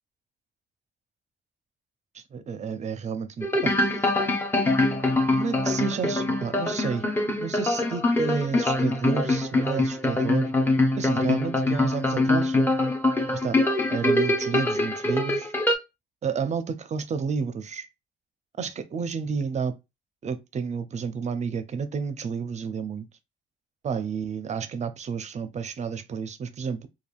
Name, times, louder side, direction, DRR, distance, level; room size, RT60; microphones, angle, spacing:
voice 1, 2.1-3.7 5.3-7.0 7.4-10.5 11.0-12.6 13.3-13.6 13.9-15.5 16.2-17.9 18.6-19.7 20.2-23.1 23.8-26.9, right 5 dB, 35° right, 0.4 m, -31 dB
sound 1, 3.4-15.8, left 2 dB, 10° left, 0.6 m, -24 dB
3.4 x 2.3 x 2.3 m
cardioid pair, 90°, 20 cm